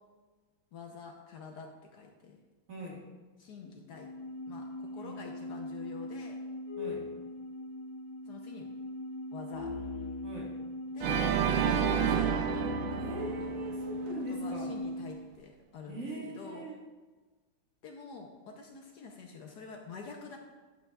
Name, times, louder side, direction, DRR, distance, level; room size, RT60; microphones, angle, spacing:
voice 1, 0.7-2.4 3.4-4.1 4.5-6.4 8.3-8.7 9.3-9.7 10.9-11.2 11.4-13.2 14.3-16.1 16.3-16.7 17.8-20.4, left 5 dB, 65° left, 2 dB, 1.2 m, -47 dB
voice 2, 2.7-3.0 5.0-5.2 6.8-7.1 10.2-10.6 13.0-14.7 15.9-16.8, right 2 dB, 45° right, -2 dB, 1.7 m, -42 dB
sound 1, 3.9-15.1, left 2 dB, 80° left, 1.7 m, -40 dB
Organ, 11.0-14.1, right 7 dB, 80° right, 1.3 m, -29 dB
10.0 x 8.3 x 2.3 m, 1.3 s
omnidirectional pair, 2.1 m